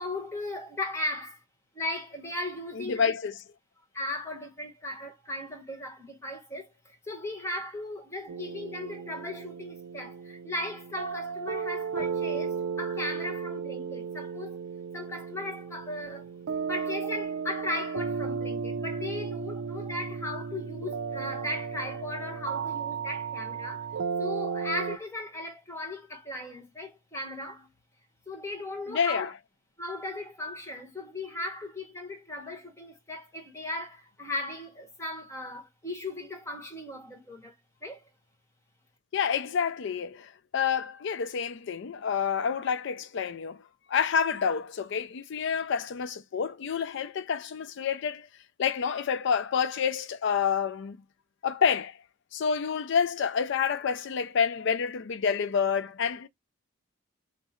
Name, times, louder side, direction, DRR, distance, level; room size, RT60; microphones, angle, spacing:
voice 1, 0.0-1.4 1.7-3.1 3.9-14.6 14.9-16.3 16.7-23.9 24.2-27.7 28.3-29.3 29.8-37.5 37.8-38.1, left 1 dB, 15° left, 1.2 m, -37 dB
voice 2, 2.8-3.3 28.9-29.3 39.1-43.6 43.9-48.3 48.6-51.0 51.4-52.0 52.3-56.3, left 6 dB, 60° left, 0.4 m, -28 dB
sound 1, 8.3-25.0, right 6 dB, 90° right, 0.4 m, -34 dB
3.6 x 2.0 x 4.3 m
head